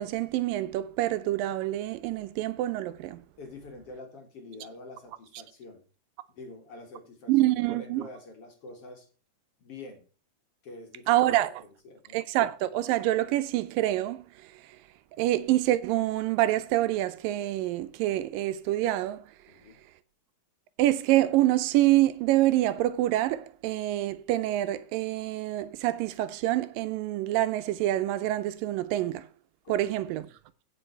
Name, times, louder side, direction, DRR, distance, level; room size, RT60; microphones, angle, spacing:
voice 1, 0.0-3.2 7.3-8.1 11.1-11.6 12.1-14.3 15.2-19.2 20.8-29.3 29.7-30.3, right 15 dB, 80° right, 2.3 m, -26 dB
voice 2, 3.4-5.8 6.3-9.1 9.6-10.1 10.6-12.2 19.5-19.8 29.6-29.9, left 2 dB, 50° left, 2.4 m, -46 dB
16.0 x 5.5 x 4.5 m
omnidirectional pair, 4.0 m